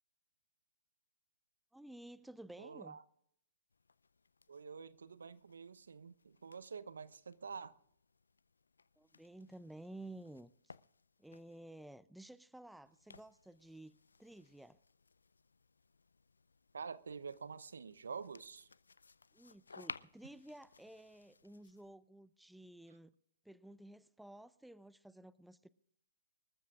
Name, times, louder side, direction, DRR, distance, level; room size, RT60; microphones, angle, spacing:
voice 1, 1.7-3.0 9.0-10.7 11.2-14.8 19.3-23.1 23.4-25.7, right 1 dB, ahead, 0.5 m, -54 dB
voice 2, 2.6-3.0 4.5-7.7 16.7-18.7, right 5 dB, 75° right, 0.8 m, -47 dB
sound 1, 3.7-11.9 12.8-21.9, left 4 dB, 80° left, 0.5 m, -58 dB
25.0 x 14.0 x 2.4 m
hypercardioid pair, 125°, 0 cm